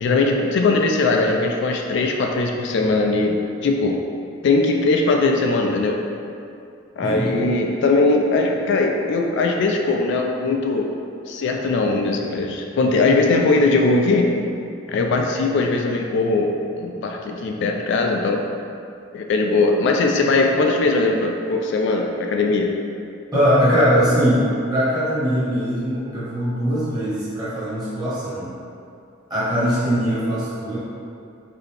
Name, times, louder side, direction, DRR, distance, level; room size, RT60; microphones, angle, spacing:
voice 1, 0.0-4.0 4.4-6.0 7.0-10.9 11.3-14.3 14.9-18.4 19.1-22.7, left 3 dB, 65° left, 2 dB, 0.3 m, -20 dB
voice 2, 23.3-24.4 24.7-28.5 29.3-30.8, equal, 20° right, -11 dB, 1.4 m, -21 dB
4.0 x 2.7 x 3.3 m, 2.5 s
head